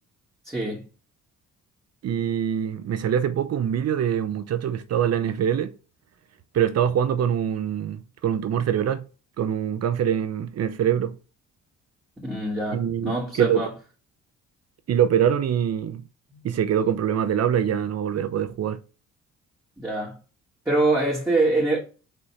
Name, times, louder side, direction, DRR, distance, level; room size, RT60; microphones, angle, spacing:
voice 1, 0.4-0.9 12.2-13.7 16.3-16.4 19.8-20.2 20.7-21.8, right 2 dB, 10° right, 2.4 m, -24 dB
voice 2, 2.0-5.7 6.5-9.0 9.4-11.1 12.7-13.6 14.9-16.0 16.4-18.8, right 9 dB, 55° right, 0.8 m, -24 dB
5.4 x 4.2 x 4.7 m
cardioid pair, 90°, 30 cm